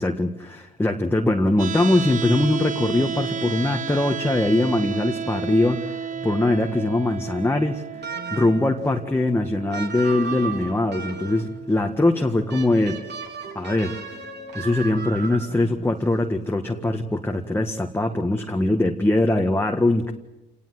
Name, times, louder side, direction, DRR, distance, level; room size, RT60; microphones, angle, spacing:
voice 1, 0.0-7.8 8.3-13.0 13.6-14.0 14.5-20.1, left 2 dB, 10° left, 2 dB, 1.8 m, -22 dB
sound 1, 0.9-18.9, right 2 dB, 75° right, 6.2 m, -46 dB
sound 2, 1.6-13.6, right 7 dB, 40° right, 1.1 m, -34 dB
sound 3, 8.0-8.7 9.7-11.5 12.5-15.7, right 5 dB, 60° right, 4.3 m, -35 dB
28.0 x 19.0 x 7.9 m, 1.0 s
cardioid pair, 90°, 20 cm